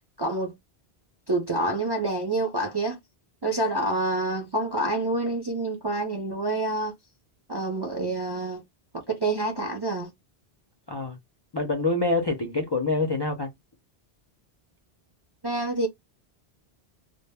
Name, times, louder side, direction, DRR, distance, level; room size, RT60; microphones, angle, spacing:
voice 1, 0.2-0.5 1.3-3.0 3.4-6.9 7.5-8.6 9.1-10.1 15.4-15.9, right 2 dB, 35° right, 0.4 m, -27 dB
voice 2, 10.9-11.2 11.5-13.5, left 2 dB, 40° left, 0.4 m, -26 dB
2.0 x 2.0 x 3.3 m
omnidirectional pair, 1.1 m